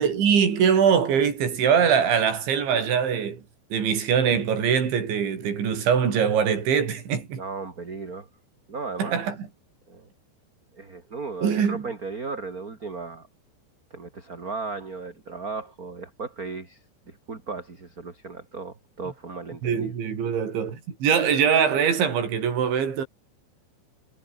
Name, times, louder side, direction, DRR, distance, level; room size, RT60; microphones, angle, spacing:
voice 1, 0.0-3.4 3.7-7.4 9.0-9.5 11.4-11.9 19.6-23.1, right 7 dB, 65° right, 7.0 m, -22 dB
voice 2, 7.3-8.3 8.7-9.2 9.9-10.1 10.7-13.3 13.9-19.9, right 4 dB, 25° right, 2.6 m, -36 dB
omnidirectional pair, 5.7 m